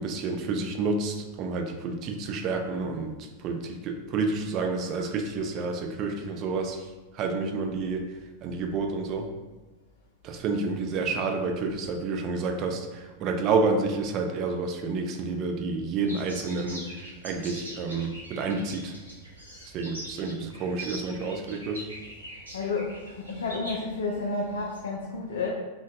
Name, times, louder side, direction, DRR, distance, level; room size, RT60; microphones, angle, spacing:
voice 1, 0.0-6.9 7.1-8.0 8.4-9.3 10.2-18.9 19.7-21.8, right 4 dB, 35° right, 4 dB, 0.4 m, -29 dB
sound 1, 16.0-24.8, equal, 80° right, 0.8 m, -43 dB
voice 2, 22.5-25.5, left 3 dB, 65° left, -2 dB, 0.4 m, -31 dB
3.7 x 2.4 x 2.4 m, 1.2 s
figure-of-eight pair, 90°, 0 cm